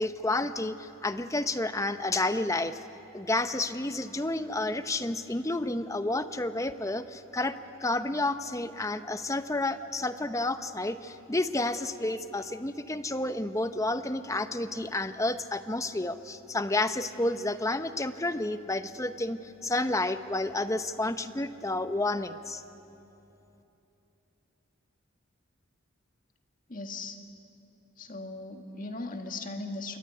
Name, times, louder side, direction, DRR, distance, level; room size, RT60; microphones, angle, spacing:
voice 1, 0.0-2.8 3.1-22.6, left 2 dB, 15° left, 10 dB, 0.8 m, -30 dB
voice 2, 26.7-27.2 28.0-30.0, left 2 dB, 40° left, 4 dB, 1.9 m, -38 dB
27.0 x 23.0 x 9.7 m, 3.0 s
head